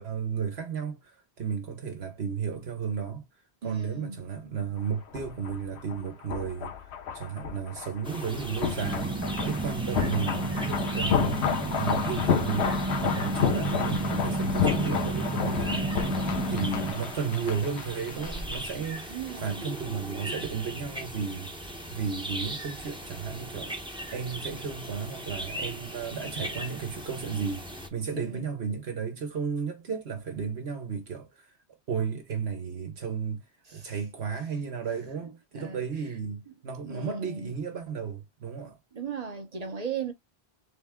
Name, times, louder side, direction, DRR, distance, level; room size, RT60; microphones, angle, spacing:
voice 1, 0.0-3.3 3.6-6.7 7.1-9.2 9.4-11.4 11.7-15.9 16.5-21.5 21.9-23.7 24.1-27.6 27.9-31.5 31.9-33.4 33.7-38.8, right 6 dB, 75° right, 1.3 m, -33 dB
voice 2, 3.6-4.2 16.3-17.0 19.1-19.7 28.1-28.5 33.7-33.9 35.5-35.8 36.8-37.5 38.9-40.1, right 6 dB, 40° right, 0.9 m, -37 dB
sound 1, 4.8-18.6 18.8-19.0, left 7 dB, 80° left, 1.1 m, -31 dB
sound 2, 8.0-27.9, equal, 5° right, 0.8 m, -39 dB
sound 3, 8.8-16.9, right 2 dB, 25° right, 0.3 m, -31 dB
3.7 x 3.3 x 3.5 m
omnidirectional pair, 1.1 m